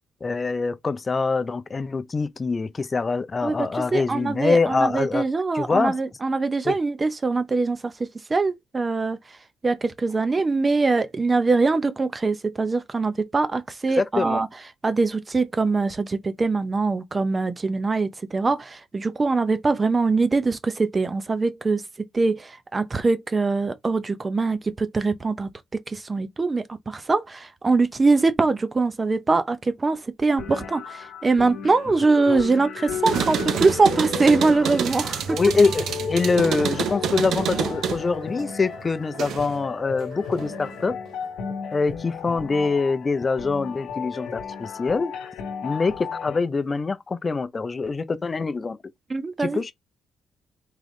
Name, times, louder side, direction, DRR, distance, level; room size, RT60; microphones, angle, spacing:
voice 1, 0.2-5.2 5.5-6.0 6.6-6.8 13.9-14.4 32.3-32.4 35.3-41.0 41.7-45.1 45.6-48.8 49.4-49.7, left 4 dB, 30° left, 0.5 m, -24 dB
voice 2, 3.9-9.2 9.6-14.5 14.8-21.8 22.1-25.5 25.9-35.4 49.1-49.6, right 3 dB, 25° right, 0.6 m, -23 dB
sound 1, 30.4-46.4, left 7 dB, 80° left, 0.9 m, -35 dB
sound 2, 32.9-39.6 40.0-40.8, right 8 dB, 70° right, 0.6 m, -28 dB
3.8 x 3.4 x 3.1 m
cardioid pair, 90°, 0 cm